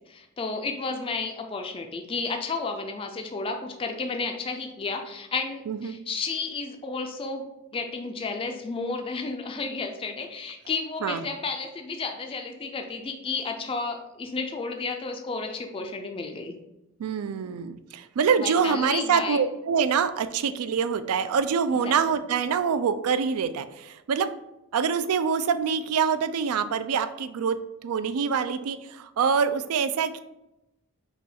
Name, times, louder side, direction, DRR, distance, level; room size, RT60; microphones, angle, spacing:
voice 1, 0.1-7.5 7.7-16.6 18.4-19.4 21.7-21.9, left 4 dB, 25° left, 4 dB, 0.3 m, -32 dB
voice 2, 5.7-6.0 11.0-11.2 17.0-24.3 24.7-30.2, right 6 dB, 80° right, 11 dB, 0.4 m, -25 dB
5.5 x 2.3 x 4.1 m, 0.91 s
head